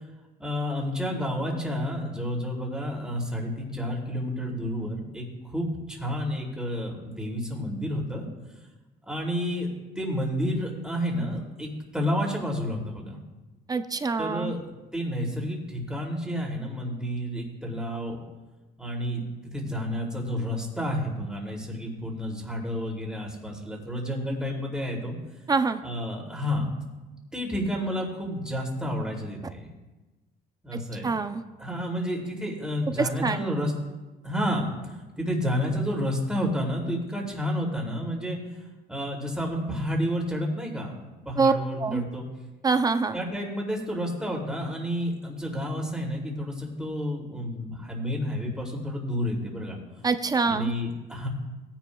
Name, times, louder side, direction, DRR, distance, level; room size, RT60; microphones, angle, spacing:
voice 1, 0.4-8.2 9.1-13.2 14.2-18.2 18.8-19.2 19.5-25.2 25.8-26.7 27.3-29.7 30.6-31.1 31.6-33.7 34.2-38.4 38.9-41.0 41.2-42.2 43.1-49.8 50.4-51.3, equal, 5° right, -1 dB, 2.7 m, -30 dB
voice 2, 13.7-14.5 25.5-25.8 30.7-31.4 33.0-33.4 41.4-41.5 41.8-42.0 42.6-43.2 50.0-50.7, right 4 dB, 20° right, 9 dB, 0.5 m, -25 dB
17.5 x 10.0 x 2.3 m, 1.2 s
cardioid pair, 110°, 17 cm